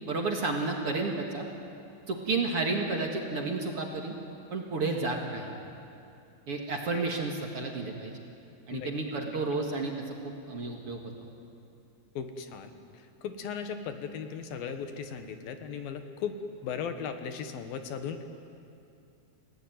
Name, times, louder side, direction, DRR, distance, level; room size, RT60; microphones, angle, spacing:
voice 1, 0.1-1.5 2.1-4.1 4.5-5.5 6.5-8.1 8.7-11.0, right 3 dB, 45° right, 1 dB, 2.4 m, -31 dB
voice 2, 12.2-16.3 16.6-18.2, left 7 dB, 75° left, 7 dB, 3.1 m, -37 dB
30.0 x 17.0 x 9.3 m, 2.7 s
omnidirectional pair, 4.3 m